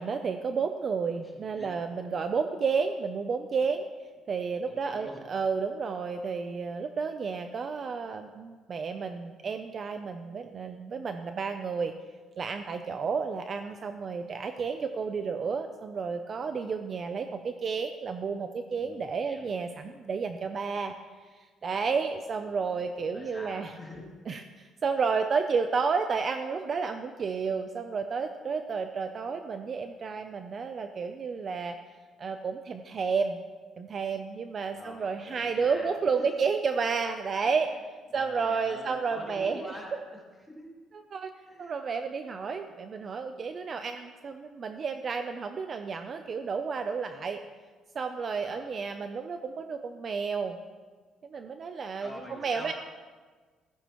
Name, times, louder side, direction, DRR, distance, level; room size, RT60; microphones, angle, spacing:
voice 1, 0.0-3.9 4.3-11.9 12.4-20.9 21.3-23.7 24.3-31.8 32.2-33.4 33.8-37.7 38.1-39.6 40.9-41.3 41.6-47.4 47.9-50.6 51.2-52.1 52.4-52.7, right 5 dB, 35° right, 7 dB, 0.5 m, -31 dB
voice 2, 1.2-1.7 4.7-5.2 14.5-14.6 18.8-19.5 23.1-24.1 34.7-35.9 36.2-36.3 37.7-37.8 38.1-40.7 41.5-41.8 42.2-42.3 48.4-48.8 52.0-52.7, left 1 dB, 5° left, -3 dB, 2.6 m, -45 dB
15.0 x 14.0 x 3.0 m, 1.4 s
cardioid pair, 155°, 0 cm